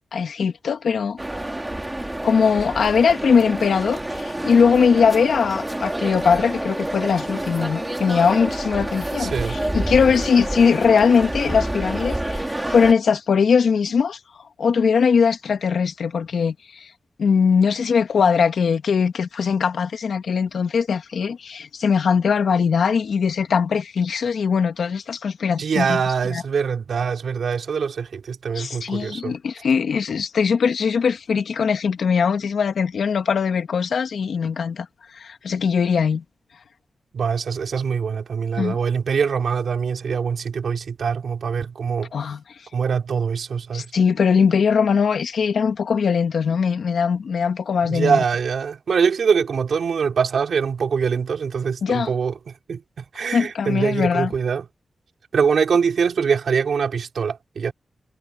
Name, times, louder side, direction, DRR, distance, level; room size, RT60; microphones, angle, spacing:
voice 1, 0.1-1.2 2.2-14.2 14.6-16.9 17.2-26.0 26.2-26.4 28.5-34.9 35.1-36.2 38.6-38.8 42.1-42.4 43.7-48.2 51.8-52.1 53.3-54.3, left 6 dB, 85° left, 2.0 m, -20 dB
sound 1, 1.2-12.9, right 1 dB, 15° right, 3.6 m, -28 dB
voice 2, 9.2-9.6 25.6-29.3 37.1-42.1 42.7-43.9 47.8-52.3 52.7-54.7 55.3-57.7, right 6 dB, 80° right, 4.2 m, -23 dB
wide cardioid pair, 115°, 0 cm